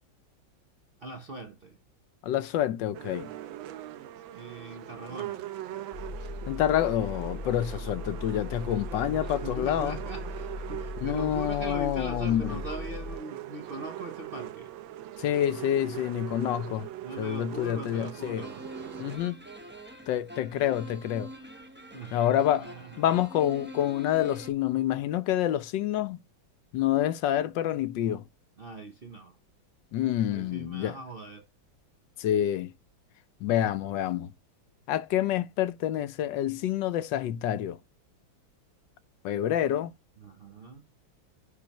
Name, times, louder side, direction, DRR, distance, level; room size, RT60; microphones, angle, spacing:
voice 1, 1.0-1.8 4.3-5.5 9.1-14.7 17.0-18.7 21.9-23.0 28.6-29.4 30.3-31.5 39.4-39.6 40.2-40.9, right 2 dB, 50° right, 0.6 m, -41 dB
voice 2, 2.2-3.3 6.5-10.0 11.0-12.6 15.2-16.9 17.2-18.4 19.0-19.4 20.1-21.3 22.1-22.7 23.0-26.2 26.7-28.2 29.9-30.9 32.2-32.7 33.4-34.3 34.9-37.8 39.2-39.9, left 11 dB, 75° left, 1.2 m, -27 dB
sound 1, 2.9-19.2, right 13 dB, 85° right, 1.4 m, -41 dB
Engine, 5.9-13.2, left 2 dB, 20° left, 0.9 m, -39 dB
sound 2, 18.1-24.5, equal, 10° right, 0.6 m, -45 dB
9.7 x 3.9 x 2.9 m
omnidirectional pair, 2.1 m